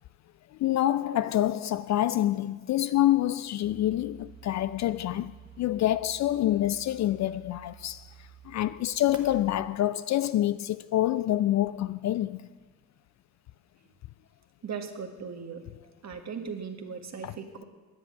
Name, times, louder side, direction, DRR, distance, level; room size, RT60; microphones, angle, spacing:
voice 1, 0.6-8.1 8.5-12.4 17.2-17.3, left 13 dB, 45° left, 0.4 m, -27 dB
sound 1, 3.6-10.6, right 10 dB, 90° right, 1.3 m, -52 dB
voice 2, 14.6-15.6 16.0-17.6, right 6 dB, 40° right, 1.8 m, -38 dB
16.5 x 10.0 x 5.6 m
hypercardioid pair, 60°, 41 cm